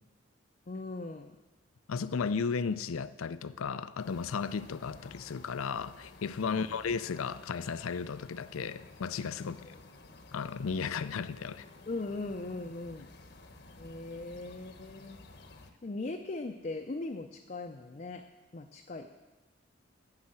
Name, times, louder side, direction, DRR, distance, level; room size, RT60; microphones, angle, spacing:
voice 1, 0.7-1.4 9.4-9.7 11.9-13.1 13.8-15.2 15.8-19.1, left 2 dB, 35° left, 4 dB, 0.5 m, -39 dB
voice 2, 1.9-9.6 10.3-11.7, left 5 dB, 90° left, 15 dB, 0.5 m, -34 dB
sound 1, 4.0-15.7, left 2 dB, 55° left, 0.9 m, -53 dB
9.7 x 7.0 x 7.6 m, 1.2 s
head